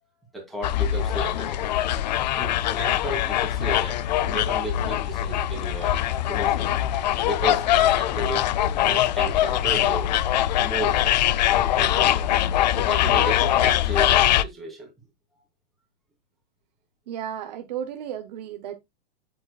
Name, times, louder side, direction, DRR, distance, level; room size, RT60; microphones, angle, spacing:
voice 1, 0.3-1.8 2.2-6.0 6.3-6.7 7.2-8.4 8.8-10.2 10.6-11.0 11.5-12.3 12.7-14.9, right 2 dB, ahead, 2.7 m, -34 dB
sound 1, 0.6-14.4, left 12 dB, 45° left, 0.4 m, -22 dB
voice 2, 17.1-18.7, right 9 dB, 40° right, 0.7 m, -33 dB
8.2 x 7.7 x 2.3 m
supercardioid pair, 175°, 32 cm